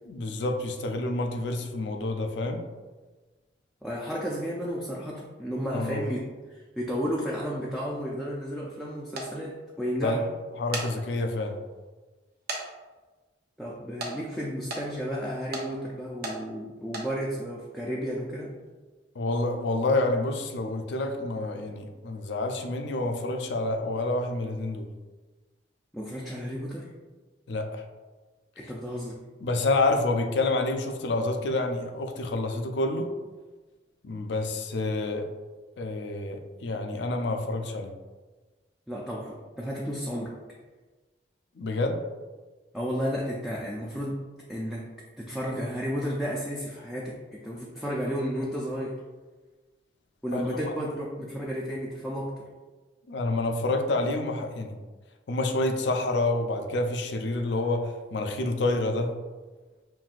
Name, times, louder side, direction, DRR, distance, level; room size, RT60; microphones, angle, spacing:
voice 1, 0.1-2.6 5.7-6.1 10.0-10.2 10.6-11.6 19.2-24.9 27.5-27.8 29.4-33.1 34.0-35.3 35.8-37.9 41.6-42.0 50.3-50.7 53.1-54.8 55.3-59.1, left 2 dB, 70° left, 5 dB, 0.4 m, -28 dB
voice 2, 3.8-10.2 13.6-18.6 25.9-26.9 28.6-29.2 38.9-40.3 42.7-44.2 44.5-44.9 45.2-49.0 50.2-52.5, equal, ahead, -5 dB, 0.4 m, -32 dB
sound 1, 9.2-9.3 10.5-10.9 11.5-11.6 12.5-12.6 12.9-13.0 14.0-14.1 14.7-14.8 15.5-15.7 16.2-16.4 16.8-17.1, right 2 dB, 55° right, 0.6 m, -33 dB
5.7 x 2.6 x 2.4 m, 1.3 s
head